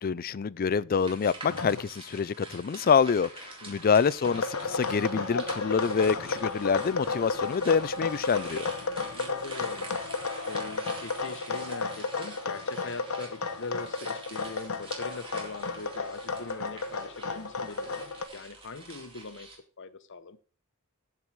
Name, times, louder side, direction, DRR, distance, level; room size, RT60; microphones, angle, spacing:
voice 1, 0.0-8.7, left 6 dB, 40° left, 0.4 m, -26 dB
sound 1, 0.9-19.6, right 2 dB, 25° right, 3.7 m, -46 dB
sound 2, 1.5-1.8 4.2-18.2, left 4 dB, 80° left, 1.1 m, -33 dB
voice 2, 3.6-3.9 8.8-19.5 19.8-20.4, left 3 dB, 60° left, 1.0 m, -42 dB
14.5 x 4.8 x 6.1 m
head